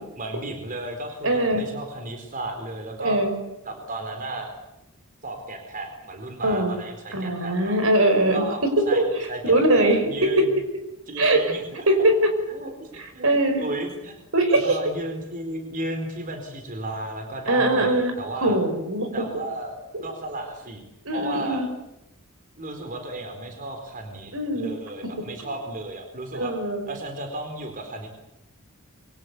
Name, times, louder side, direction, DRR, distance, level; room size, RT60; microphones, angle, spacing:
voice 1, 0.2-3.2 3.6-4.5 5.2-7.8 8.3-9.0 9.3-10.5 11.1-11.8 12.5-14.2 14.5-18.6 19.1-19.8 20.0-20.8 21.1-21.6 22.6-26.5 26.9-28.1, right 2 dB, 40° right, 4 dB, 4.2 m, -34 dB
voice 2, 1.2-1.6 3.0-3.3 6.4-6.7 7.1-8.4 8.8-9.1 9.4-10.4 11.2-11.4 11.9-12.3 13.2-13.7 14.3-14.8 17.5-18.1 18.4-19.1 19.9-20.0 21.1-21.7 24.3-24.7 26.3-26.8, right 1 dB, 65° right, 7 dB, 5.5 m, -21 dB
27.5 x 24.0 x 8.4 m, 0.89 s
head